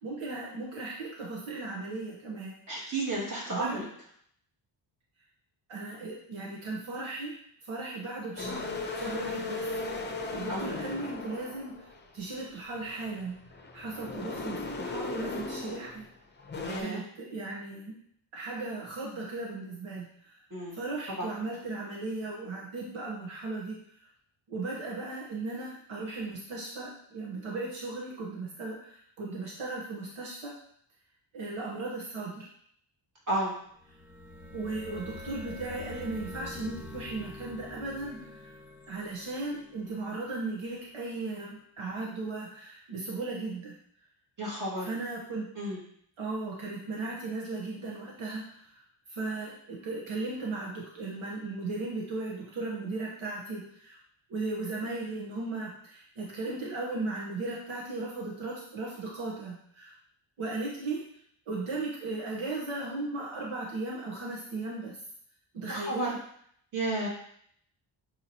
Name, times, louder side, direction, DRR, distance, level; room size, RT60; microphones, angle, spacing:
voice 1, 0.0-2.9 3.5-3.9 5.7-7.3 7.7-9.6 10.3-13.4 13.7-16.1 16.8-17.9 18.3-20.3 20.7-23.8 24.5-30.5 31.3-32.5 34.5-38.6 38.9-43.8 44.8-45.5 46.2-48.8 49.1-54.0 54.3-59.9 60.4-61.0 61.5-65.0 65.5-66.1, right 3 dB, 80° right, -3 dB, 1.2 m, -36 dB
voice 2, 2.7-3.9 10.5-10.7 16.6-17.0 20.5-20.8 21.2-21.3 33.3-33.5 44.4-44.9 45.6-45.8 65.7-66.1 66.7-67.1, right 2 dB, 40° right, -5 dB, 2.2 m, -32 dB
sound 1, 8.4-12.2 12.7-16.1 16.4-16.8, left 3 dB, 20° left, 0.7 m, -37 dB
sound 2, 33.7-40.5, left 1 dB, 5° right, 0.9 m, -45 dB
6.8 x 4.7 x 2.9 m, 0.67 s
wide cardioid pair, 145°, 48 cm